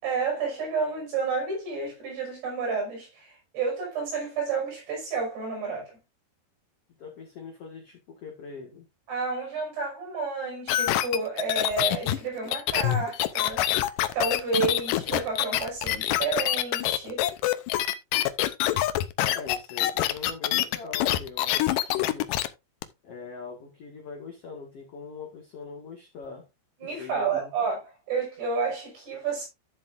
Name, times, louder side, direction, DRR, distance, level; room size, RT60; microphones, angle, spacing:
voice 1, 0.0-6.0 9.1-13.6 14.1-17.2 26.8-29.5, right 4 dB, 75° right, 7.7 m, -30 dB
voice 2, 7.0-8.9 19.2-22.3 23.0-26.5 26.8-27.7, left 5 dB, 50° left, 2.1 m, -42 dB
sound 1, 10.7-22.5 22.8-22.9, left 14 dB, 85° left, 1.9 m, -25 dB
12.0 x 7.5 x 2.5 m
omnidirectional pair, 4.8 m